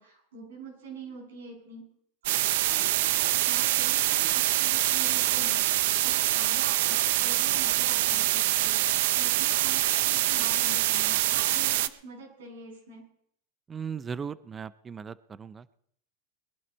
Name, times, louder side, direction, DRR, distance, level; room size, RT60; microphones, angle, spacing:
voice 1, 0.0-1.9 2.2-8.8 9.1-13.1, right 3 dB, 85° right, -1 dB, 7.9 m, -45 dB
sound 1, 2.3-11.9, right 15 dB, 70° right, 0.6 m, -25 dB
voice 2, 13.7-15.6, right 6 dB, 20° right, 17 dB, 0.5 m, -37 dB
21.5 x 11.0 x 4.4 m, 0.68 s
hypercardioid pair, 115°, 0 cm